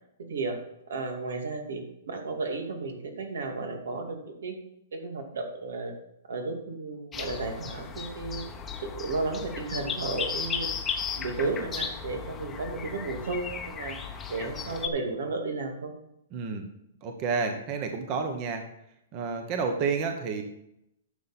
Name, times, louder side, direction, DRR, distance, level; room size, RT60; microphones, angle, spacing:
voice 1, 0.2-0.6 0.9-4.6 4.9-5.9 6.2-8.5 8.9-10.7 11.2-14.0 14.3-15.9, right 3 dB, 85° right, 4 dB, 2.4 m, -33 dB
sound 1, 7.1-14.9, left 6 dB, 15° left, 0.9 m, -35 dB
voice 2, 16.3-16.6 17.0-18.6 19.1-20.4, right 5 dB, 30° right, 5 dB, 1.1 m, -30 dB
11.5 x 6.8 x 4.3 m, 0.81 s
hypercardioid pair, 155°, 0 cm